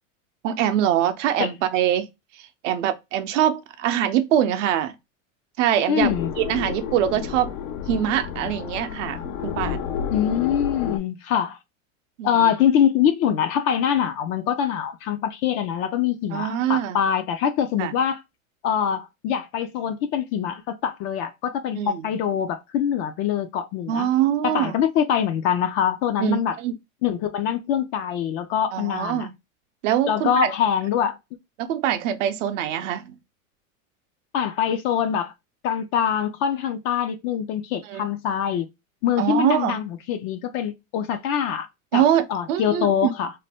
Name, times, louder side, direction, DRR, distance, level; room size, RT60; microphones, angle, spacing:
voice 1, 0.4-2.1 2.6-4.9 5.6-6.1 6.4-7.5 7.9-9.9 12.2-12.5 16.3-17.0 17.8-17.9 21.7-22.1 23.9-24.7 26.2-26.7 28.7-29.3 29.8-30.5 31.6-33.1 37.9-38.1 39.2-39.8 41.9-43.1, right 10 dB, 65° right, 0.6 m, -23 dB
voice 2, 5.9-6.3 10.0-11.6 12.2-18.2 18.6-24.1 24.4-26.6 27.0-29.3 30.1-31.2 34.3-35.3 35.6-38.7 39.0-41.7 41.9-42.0 42.3-43.3, left 9 dB, 35° left, 0.4 m, -24 dB
sound 1, 6.0-11.0, left 8 dB, 75° left, 0.6 m, -31 dB
2.6 x 2.1 x 3.4 m
hypercardioid pair, 115°, 41 cm